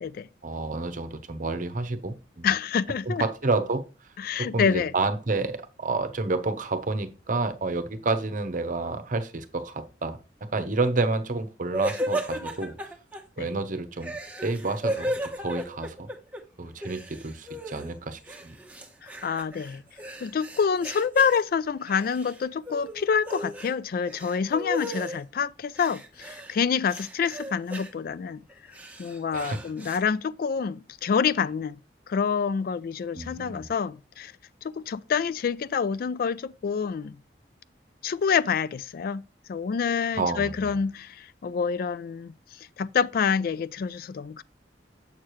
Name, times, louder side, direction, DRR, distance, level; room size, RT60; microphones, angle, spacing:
voice 1, 0.4-2.5 3.1-3.8 4.4-10.2 10.5-12.8 13.4-14.2 14.4-16.1 16.6-18.6 29.3-29.6 33.1-33.7 40.1-40.8, right 3 dB, 50° right, 0.8 m, -29 dB
voice 2, 2.4-3.3 4.2-4.9 13.4-13.5 19.2-19.8 20.2-28.4 29.0-31.8 32.1-34.3 34.6-37.2 38.0-39.2 39.5-42.3 42.8-44.4, left 6 dB, 55° left, 0.3 m, -27 dB
sound 1, 11.7-13.2 14.0-16.4 16.7-17.9 18.3-21.4 21.8-22.4 22.7-23.7 24.0-25.2 25.8-26.6 26.9-27.9 28.5-30.0, equal, 10° right, 1.0 m, -35 dB
7.3 x 6.5 x 3.0 m
head